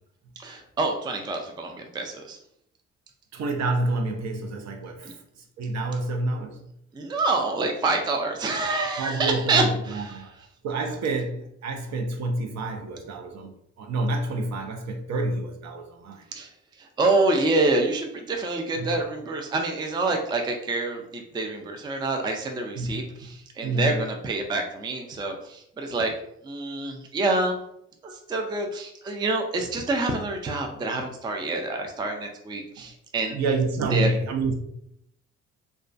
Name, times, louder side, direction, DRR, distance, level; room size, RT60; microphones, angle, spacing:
voice 1, 0.4-2.4 5.0-5.1 6.9-10.2 16.3-16.5 16.8-26.1 26.4-27.6 28.0-33.4 33.9-34.1, right 3 dB, 15° right, 0.3 m, -27 dB
voice 2, 3.3-5.2 5.6-6.6 9.0-10.3 10.6-16.2 18.8-19.0 22.8-23.3 23.6-24.0 32.8-32.9 33.3-34.5, right 2 dB, 60° right, 0.6 m, -28 dB
2.3 x 2.2 x 2.5 m
cardioid pair, 90°, 30 cm